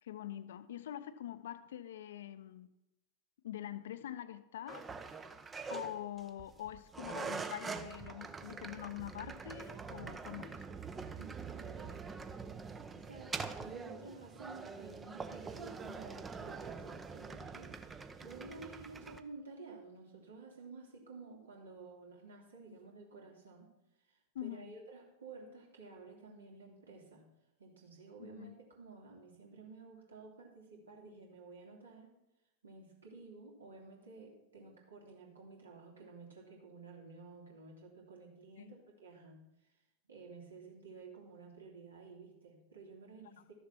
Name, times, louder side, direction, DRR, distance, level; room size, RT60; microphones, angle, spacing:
voice 1, 0.0-2.7 3.4-4.9 5.7-10.6 24.3-24.7 28.2-28.5 38.6-38.8, left 12 dB, 60° left, 12 dB, 0.7 m, -45 dB
sound 1, 4.7-19.2, right 5 dB, 15° right, 0.8 m, -44 dB
voice 2, 11.2-12.4 12.9-23.7 24.0-27.2 27.6-32.1 32.6-39.7 40.1-43.5, right 4 dB, 70° right, -1 dB, 3.0 m, -53 dB
13.0 x 7.1 x 5.9 m, 0.91 s
figure-of-eight pair, 90°, 0 cm